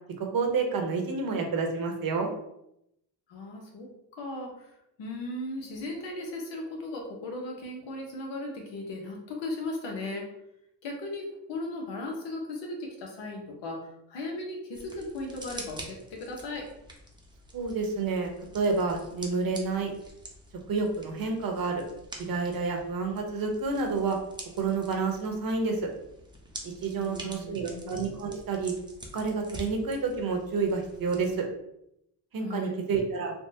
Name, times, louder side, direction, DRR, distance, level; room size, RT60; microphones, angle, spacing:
voice 1, 0.2-2.3 17.5-19.9 20.7-21.8 22.2-24.2 24.5-25.9 26.6-28.7 29.1-31.4 32.3-33.3, right 4 dB, 50° right, 3 dB, 0.9 m, -29 dB
voice 2, 3.3-10.3 10.8-16.7 26.9-27.9 32.4-32.7, left 2 dB, 80° left, 1 dB, 1.0 m, -37 dB
sound 1, 14.7-31.4, right 1 dB, 10° right, 0.7 m, -47 dB
3.5 x 2.3 x 2.7 m, 0.80 s
cardioid pair, 75°, 44 cm